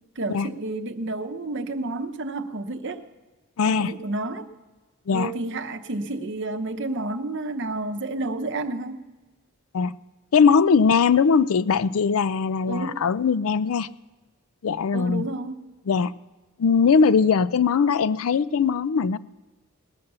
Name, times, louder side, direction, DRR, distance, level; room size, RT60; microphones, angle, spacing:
voice 1, 0.2-3.0 3.6-4.5 5.1-9.1 12.7-13.1 14.9-15.7, right 2 dB, 55° right, 8 dB, 0.9 m, -30 dB
voice 2, 3.6-3.9 5.1-5.3 9.7-9.9 10.3-13.9 14.6-15.2 15.9-16.1 16.6-19.2, left 5 dB, 70° left, 16 dB, 0.4 m, -20 dB
20.0 x 6.9 x 6.7 m, 1.2 s
head